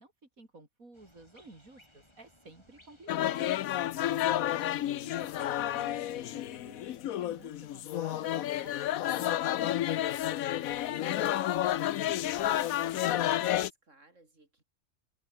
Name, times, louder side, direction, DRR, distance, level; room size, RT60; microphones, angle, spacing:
voice 1, 0.0-3.6 4.2-9.5, right 2 dB, 85° right, 5.5 m, -54 dB
sound 1, 0.9-8.9, left 1 dB, 20° left, 6.0 m, -63 dB
sound 2, 3.1-13.7, left 12 dB, 85° left, 1.2 m, -31 dB
voice 2, 4.5-5.1 10.9-14.6, right 2 dB, 65° right, 5.8 m, -61 dB
omnidirectional pair, 1.4 m